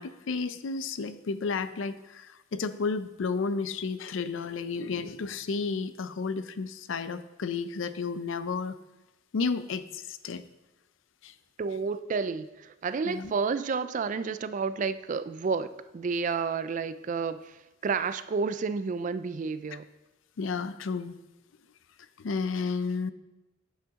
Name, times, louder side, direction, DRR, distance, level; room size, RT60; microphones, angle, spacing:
voice 1, 0.0-8.8 9.3-10.4 11.2-11.3 13.1-13.3 20.4-21.2 22.2-23.1, left 4 dB, 75° left, 12 dB, 0.5 m, -32 dB
voice 2, 11.6-19.8, right 5 dB, 40° right, 13 dB, 0.3 m, -31 dB
8.9 x 7.8 x 3.6 m, 1.0 s
head